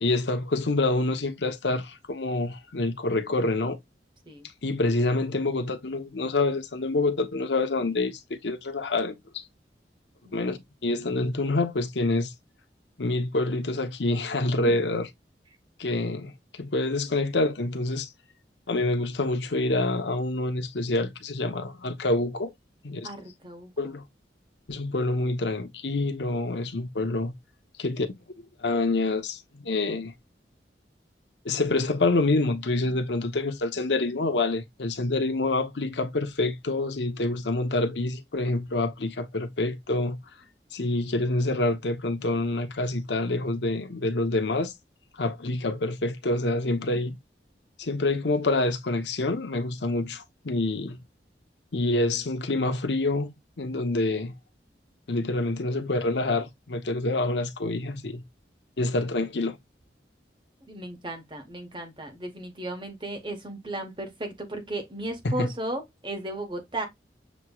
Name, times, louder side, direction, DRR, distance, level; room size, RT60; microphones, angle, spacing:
voice 1, 0.0-3.8 4.6-9.4 10.3-12.3 13.0-15.1 15.8-18.1 18.7-22.5 22.8-23.1 23.8-24.0 24.7-27.3 27.8-28.1 28.6-30.1 31.4-40.2 40.7-44.7 45.2-47.2 47.8-51.0 51.7-54.3 55.1-58.2 58.8-59.6 65.2-65.5, left 2 dB, 80° left, 0.8 m, -27 dB
voice 2, 23.0-23.9 47.1-47.2 60.7-66.9, right 1 dB, 25° right, 1.1 m, -35 dB
7.1 x 3.0 x 2.3 m
head